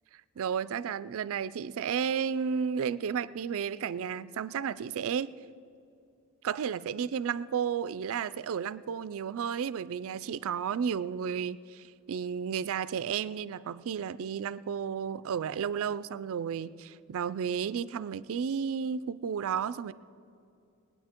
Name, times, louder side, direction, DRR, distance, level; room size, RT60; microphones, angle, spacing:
voice 1, 0.4-5.4 6.4-19.9, right 7 dB, 65° right, 16 dB, 0.4 m, -32 dB
21.0 x 9.1 x 4.4 m, 2.5 s
head